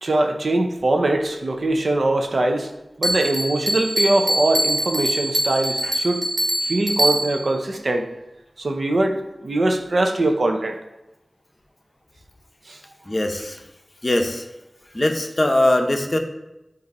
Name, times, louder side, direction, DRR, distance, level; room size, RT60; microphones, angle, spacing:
voice 1, 0.0-2.7 3.0-6.2 6.6-8.1 8.6-10.8 12.7-12.8, right 2 dB, 75° right, 4 dB, 0.7 m, -22 dB
Bell, 3.0-7.5, right 1 dB, 35° right, 1.2 m, -23 dB
voice 2, 13.1-13.6 14.0-14.5 14.9-16.2, left 1 dB, 35° left, 4 dB, 0.7 m, -21 dB
7.9 x 2.7 x 5.3 m, 0.94 s
wide cardioid pair, 70°, 0 cm